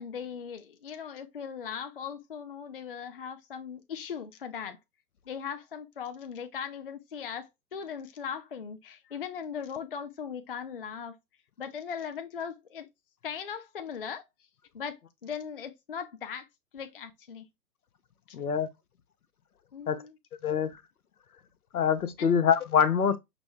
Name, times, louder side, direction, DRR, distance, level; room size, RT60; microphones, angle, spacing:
voice 1, 0.0-4.8 5.3-11.2 11.6-12.9 13.2-14.2 14.7-16.5 16.7-17.5 18.3-18.4 19.7-20.1 22.2-22.3, left 7 dB, 35° left, 0.4 m, -39 dB
voice 2, 18.3-18.7 19.9-20.0 20.4-20.7 21.7-23.2, left 7 dB, 65° left, 0.8 m, -24 dB
6.0 x 2.1 x 3.3 m
figure-of-eight pair, 125°, 49 cm